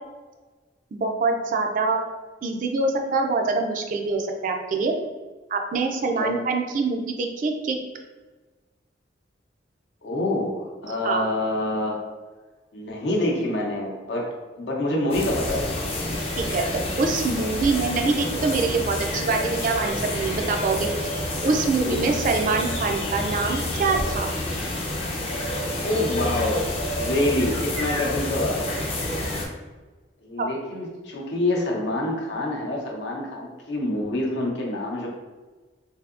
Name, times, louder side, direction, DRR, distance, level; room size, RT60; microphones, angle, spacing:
voice 1, 1.0-2.0 2.4-4.9 5.5-7.8 10.8-11.3 16.4-21.1 21.4-24.3 30.4-30.5, right 3 dB, 45° right, 3 dB, 0.3 m, -25 dB
voice 2, 6.0-6.3 10.0-12.0 12.7-15.7 21.9-22.0 25.8-28.7 30.2-35.1, left 1 dB, 70° left, -1 dB, 0.7 m, -26 dB
sound 1, 15.1-29.5, left 1 dB, 30° left, 0.5 m, -28 dB
3.4 x 2.7 x 2.4 m, 1.3 s
head